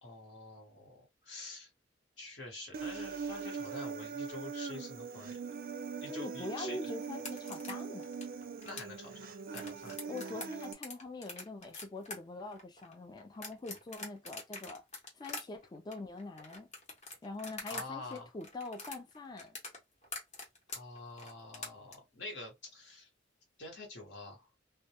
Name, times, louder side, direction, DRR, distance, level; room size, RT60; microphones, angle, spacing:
voice 1, 0.0-1.7 2.2-5.4 6.0-6.8 8.6-10.0 17.7-18.3 20.7-23.1 23.6-24.5, left 2 dB, 65° left, 1.1 m, -47 dB
Human voice, 2.7-10.7, right 5 dB, 50° right, 0.4 m, -41 dB
voice 2, 6.1-8.1 10.1-14.8 15.2-16.7 17.2-19.6, left 2 dB, 20° left, 0.3 m, -44 dB
sound 1, 7.1-17.9 18.1-21.9, left 2 dB, 40° left, 0.9 m, -45 dB
2.2 x 2.1 x 2.8 m
head